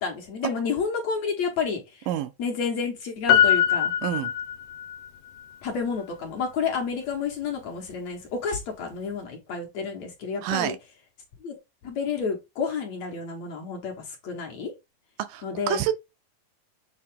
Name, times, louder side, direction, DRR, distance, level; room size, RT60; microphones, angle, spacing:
voice 1, 0.0-2.1 2.4-3.9 5.6-10.7 11.4-11.5 11.8-14.7 15.4-15.8, left 5 dB, 60° left, 2.1 m, -30 dB
Piano, 3.3-5.1 5.4-5.5, left 10 dB, 85° left, 2.5 m, -22 dB
voice 2, 4.0-4.3 10.4-10.8 15.3-15.9, right 11 dB, 80° right, 2.1 m, -27 dB
7.7 x 3.9 x 3.6 m
omnidirectional pair, 4.1 m